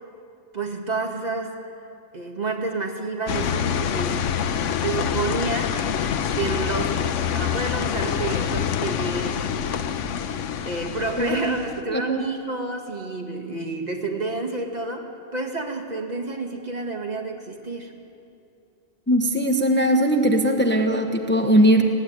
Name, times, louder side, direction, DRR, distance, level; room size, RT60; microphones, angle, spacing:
voice 1, 0.5-1.6 2.1-4.3 4.8-5.8 6.3-9.5 10.6-15.1 15.3-17.9, right 3 dB, 35° right, 1 dB, 2.1 m, -29 dB
sound 1, 3.3-11.8, left 8 dB, 75° left, 1.1 m, -26 dB
voice 2, 11.9-12.2 19.1-21.9, equal, 10° left, 3 dB, 1.1 m, -19 dB
20.0 x 17.0 x 9.4 m, 2.6 s
omnidirectional pair, 1.3 m